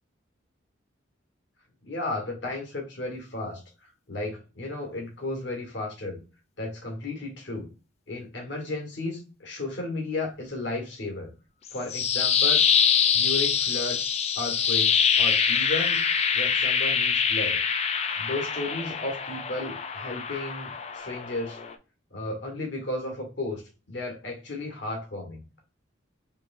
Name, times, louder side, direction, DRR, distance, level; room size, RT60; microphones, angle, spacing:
voice 1, 1.9-3.6 4.1-6.2 6.6-7.7 8.1-11.3 11.7-12.6 13.1-14.1 14.3-16.0 16.3-17.6 18.2-21.6 22.1-23.6 23.9-25.6, left 2 dB, 65° left, 0 dB, 1.5 m, -34 dB
sound 1, 11.7-21.7, left 7 dB, 30° left, 0.4 m, -25 dB
4.5 x 3.2 x 2.5 m, 0.32 s
head